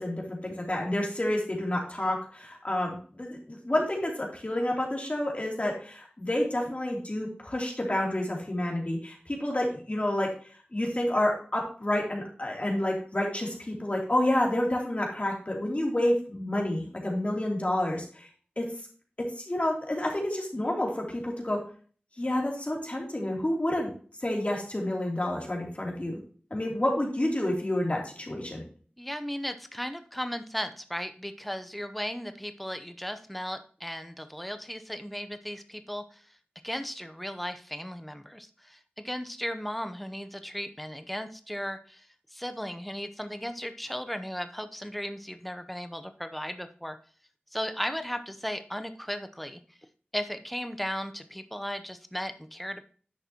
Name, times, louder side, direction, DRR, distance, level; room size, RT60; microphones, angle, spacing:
voice 1, 0.0-10.3 10.7-18.3 18.6-18.7 19.4-21.6 22.2-23.9 24.2-26.2 26.5-28.6, left 1 dB, 40° left, -1 dB, 2.9 m, -29 dB
voice 2, 29.0-36.4 36.6-47.0 47.5-49.8 50.1-52.8, equal, ahead, 9 dB, 0.7 m, -36 dB
10.5 x 6.5 x 2.9 m, 0.42 s
wide cardioid pair, 50°, 4 cm